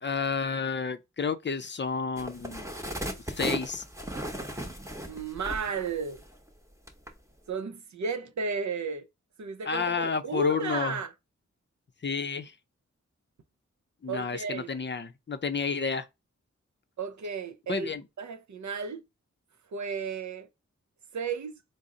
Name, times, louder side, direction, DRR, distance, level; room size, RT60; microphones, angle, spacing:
voice 1, 0.0-2.7 3.3-3.8 9.6-10.9 12.0-12.5 14.0-16.1 17.7-18.0, left 5 dB, 40° left, 0.5 m, -31 dB
sound 1, 2.2-6.5 6.9-7.1, equal, 10° right, 0.9 m, -36 dB
voice 2, 5.1-6.2 7.5-9.1 9.4-11.1 14.1-14.7 17.0-17.9 18.2-19.0 19.7-20.5 21.1-21.5, right 5 dB, 75° right, 0.6 m, -33 dB
3.9 x 2.0 x 3.7 m
cardioid pair, 50°, 29 cm